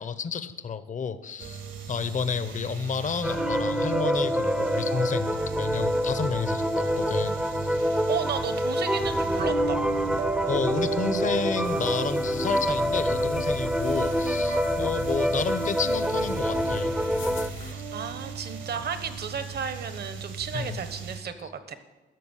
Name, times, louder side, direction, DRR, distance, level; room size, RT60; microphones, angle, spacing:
voice 1, 0.0-7.8 10.5-17.8 20.5-20.8, left 5 dB, 40° left, 12 dB, 0.8 m, -31 dB
sound 1, 1.4-21.2, right 6 dB, 75° right, 2.0 m, -36 dB
sound 2, 3.2-17.5, equal, 5° right, 0.7 m, -27 dB
voice 2, 8.1-9.8 17.6-21.8, right 6 dB, 55° right, 10 dB, 1.2 m, -33 dB
sound 3, 11.6-17.7, left 7 dB, 75° left, 1.0 m, -42 dB
12.0 x 6.7 x 8.3 m, 1.2 s
cardioid pair, 90°, 20 cm